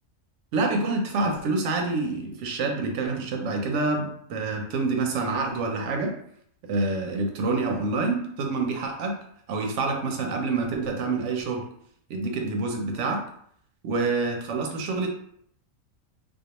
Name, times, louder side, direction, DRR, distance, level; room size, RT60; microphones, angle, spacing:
voice 1, 0.5-6.1 6.7-9.2 9.5-11.6 12.1-13.2 13.8-15.1, right 3 dB, 70° right, 2 dB, 0.9 m, -27 dB
2.3 x 2.3 x 2.8 m, 0.66 s
omnidirectional pair, 1.4 m